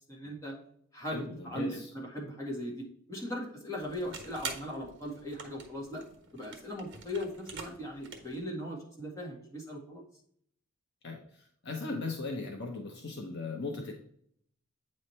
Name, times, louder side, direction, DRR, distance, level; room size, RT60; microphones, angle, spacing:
voice 1, 0.1-0.5 0.9-1.8 2.1-6.0 6.3-10.0, equal, 15° left, -5 dB, 1.9 m, -39 dB
voice 2, 1.1-1.9 7.7-7.8 11.0-11.2 11.6-13.9, left 3 dB, 55° left, 1 dB, 0.9 m, -38 dB
sound 1, 3.8-8.4, right 5 dB, 60° right, 1.3 m, -46 dB
8.7 x 3.2 x 4.3 m, 0.64 s
head